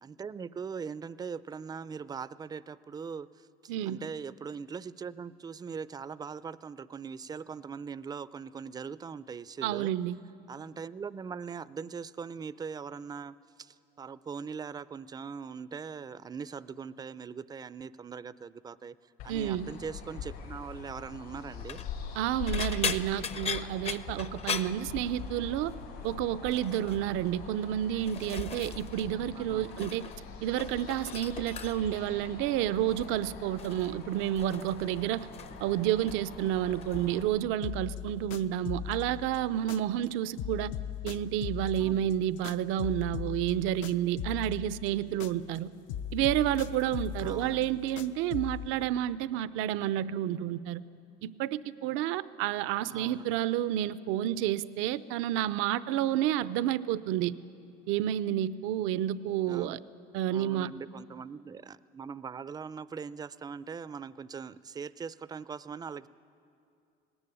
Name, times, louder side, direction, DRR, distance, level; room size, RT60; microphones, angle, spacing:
voice 1, 0.0-9.9 10.5-18.9 19.2-21.8 29.3-29.9 41.8-42.1 47.2-47.8 52.9-53.4 59.5-59.8 60.3-66.1, right 6 dB, 20° right, 17 dB, 0.4 m, -41 dB
voice 2, 3.7-4.0 9.6-10.2 19.3-19.7 22.2-25.7 26.0-30.1 30.4-35.3 35.6-40.7 41.0-45.7 46.1-50.8 51.2-57.3 57.9-59.8 60.1-60.7, right 12 dB, 75° right, 16 dB, 0.6 m, -30 dB
sound 1, 19.2-37.2, left 6 dB, 85° left, 5.8 m, -43 dB
sound 2, 21.5-21.9 22.5-25.5 25.8-26.1 26.5-27.0 27.7-29.1 29.3-30.2 30.5-32.0 32.9-33.2 33.6-35.6 35.9-36.4 36.8-37.0 38.3-38.4, left 6 dB, 30° left, 0.7 m, -39 dB
sound 3, 37.6-40.1 40.4-45.6 45.9-48.7, left 10 dB, 70° left, 0.8 m, -39 dB
19.0 x 17.0 x 9.9 m, 2.5 s
cardioid pair, 130°, 21 cm